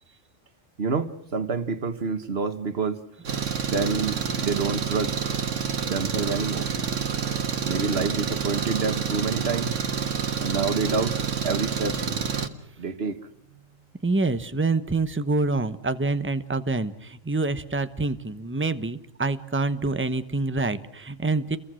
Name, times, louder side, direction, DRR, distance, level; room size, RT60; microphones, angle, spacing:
voice 1, 0.8-3.0 3.7-5.1 5.8-6.7 7.6-9.8 10.4-11.2 11.4-12.1 12.4-13.2, right 4 dB, 50° right, 1.7 m, -28 dB
Engine, 3.3-12.5, right 6 dB, 70° right, 1.9 m, -28 dB
voice 2, 14.0-21.6, right 3 dB, 10° right, 0.9 m, -26 dB
29.5 x 22.5 x 6.4 m
omnidirectional pair, 1.3 m